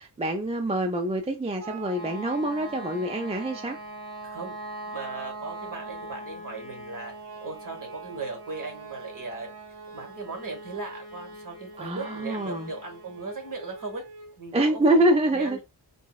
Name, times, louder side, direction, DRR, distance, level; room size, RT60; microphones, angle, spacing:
voice 1, 0.0-3.8 11.8-12.7 14.5-15.6, right 1 dB, 15° right, 0.4 m, -25 dB
sound 1, 1.6-14.4, right 2 dB, 35° right, 1.6 m, -41 dB
voice 2, 4.2-4.5 4.9-7.1 7.4-14.0 14.4-15.6, right 3 dB, 50° right, 1.3 m, -38 dB
3.7 x 2.0 x 2.3 m
wide cardioid pair, 100°, 41 cm